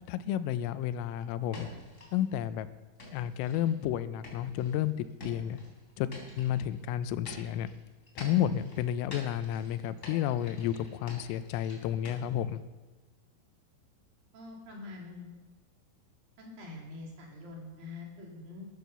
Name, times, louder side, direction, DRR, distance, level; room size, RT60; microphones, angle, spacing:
voice 1, 0.1-1.7 2.1-2.7 3.1-4.9 5.2-5.6 6.0-6.1 6.4-7.7 8.2-12.6, left 11 dB, 90° left, 13 dB, 3.3 m, -31 dB
sound 1, 1.5-2.2 3.0-3.8 4.2-6.7 7.3-12.1, left 1 dB, 15° left, 3.4 m, -47 dB
voice 2, 14.3-15.3 16.4-18.7, left 3 dB, 50° right, -1 dB, 3.7 m, -45 dB
14.5 x 12.5 x 6.9 m, 1.2 s
omnidirectional pair, 5.8 m